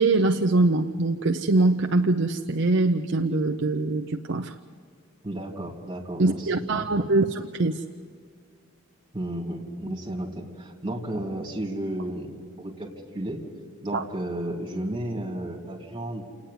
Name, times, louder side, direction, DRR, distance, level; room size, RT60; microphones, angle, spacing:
voice 1, 0.0-4.5 6.2-7.8 13.9-14.0, right 2 dB, 55° right, 5 dB, 0.7 m, -23 dB
voice 2, 5.2-6.5 6.8-6.9 9.1-13.4 13.8-16.2, right 1 dB, 25° right, 0 dB, 3.2 m, -33 dB
29.0 x 9.7 x 9.6 m, 2.1 s
head